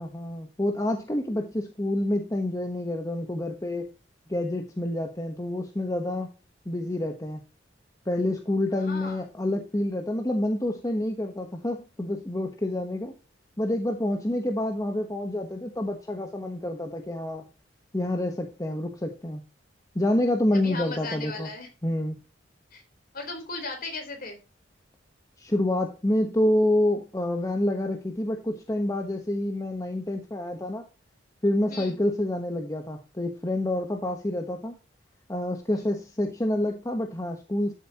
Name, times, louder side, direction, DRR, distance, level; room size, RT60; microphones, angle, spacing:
voice 1, 0.0-3.9 4.3-6.3 6.6-7.4 8.1-13.1 13.6-17.5 17.9-19.4 19.9-21.5 21.8-22.2 25.4-30.8 31.4-34.7 35.3-37.7, left 1 dB, 20° left, 4 dB, 1.2 m, -28 dB
voice 2, 8.7-9.2 20.5-21.7 22.7-22.8 23.1-24.4 31.7-32.0 35.7-35.8, left 3 dB, 50° left, 4 dB, 3.9 m, -37 dB
12.5 x 7.2 x 2.9 m, 0.30 s
head